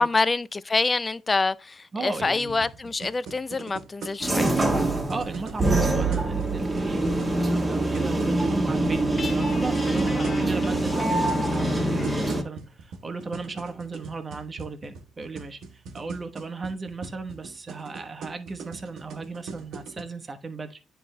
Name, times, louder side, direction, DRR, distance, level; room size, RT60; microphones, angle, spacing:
voice 1, 0.0-4.5 9.9-10.0, left 3 dB, 25° left, 0.4 m, -26 dB
voice 2, 1.9-2.6 5.1-15.6 15.9-20.8, right 3 dB, 30° right, 1.1 m, -36 dB
sound 1, 2.2-20.0, right 4 dB, 75° right, 1.0 m, -41 dB
sound 2, 4.2-12.4, right 2 dB, 15° right, 1.5 m, -24 dB
Guitar, 9.2-12.4, left 4 dB, 45° left, 1.4 m, -38 dB
9.7 x 3.4 x 3.2 m
cardioid pair, 90°, 0 cm